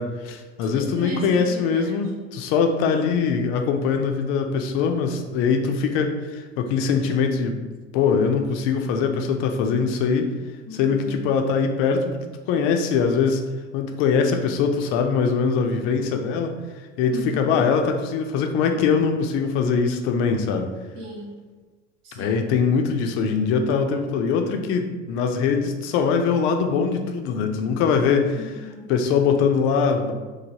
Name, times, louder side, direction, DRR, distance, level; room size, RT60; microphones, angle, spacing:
voice 1, 0.0-7.6 7.9-10.3 10.8-12.2 12.5-13.4 13.7-16.6 17.0-20.7 22.2-28.4 28.9-30.1, left 5 dB, 40° left, 5 dB, 0.4 m, -22 dB
voice 2, 0.6-2.1 10.6-11.3 17.1-17.7 20.9-21.4 22.0-22.5 28.3-28.9, equal, 55° right, -2 dB, 1.0 m, -36 dB
3.1 x 2.2 x 2.7 m, 1.3 s
figure-of-eight pair, 70°, 34 cm